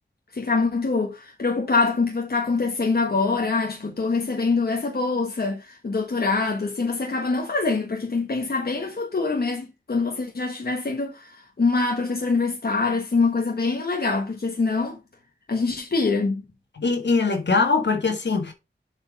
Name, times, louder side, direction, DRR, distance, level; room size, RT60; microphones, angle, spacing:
voice 1, 0.3-15.0 15.5-16.4, left 4 dB, 60° left, 1.4 m, -24 dB
voice 2, 16.8-18.5, left 4 dB, 80° left, 1.9 m, -22 dB
7.6 x 4.4 x 5.2 m
wide cardioid pair, 70°, 18 cm